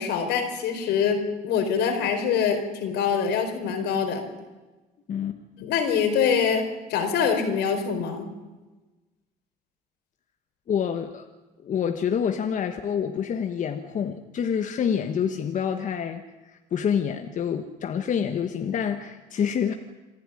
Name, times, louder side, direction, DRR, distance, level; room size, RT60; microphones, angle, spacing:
voice 1, 0.0-4.3 5.6-8.3, left 6 dB, 85° left, 4 dB, 4.4 m, -24 dB
voice 2, 5.1-5.4 10.7-11.2 11.6-19.7, left 7 dB, 50° left, 6 dB, 1.4 m, -27 dB
27.0 x 12.5 x 9.9 m, 1.2 s
cardioid pair, 110°, 17 cm